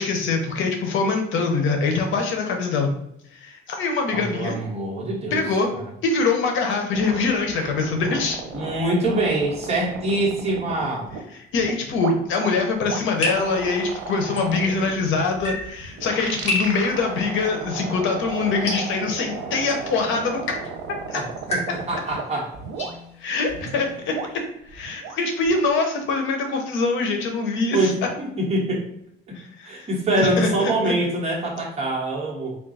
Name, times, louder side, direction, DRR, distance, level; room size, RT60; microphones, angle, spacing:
voice 1, 0.0-2.9 3.3-4.6 5.3-5.7 6.0-8.4 11.5-20.6 21.1-21.2 23.2-24.1 24.7-27.9 29.3-29.9 30.2-30.9, left 4 dB, 75° left, 3 dB, 0.7 m, -24 dB
voice 2, 4.1-5.4 5.7-5.8 8.5-11.1 21.1-22.5 27.7-28.9 29.3-29.4 29.6-32.6, right 2 dB, 30° right, -4 dB, 1.1 m, -24 dB
sound 1, 6.9-11.2 11.5-22.2 22.5-22.9 23.5-25.7, right 6 dB, 90° right, 0.7 m, -34 dB
sound 2, 12.8-24.5, left 1 dB, 30° left, 1.2 m, -34 dB
3.6 x 2.3 x 4.0 m, 0.75 s
cardioid pair, 160°, 20 cm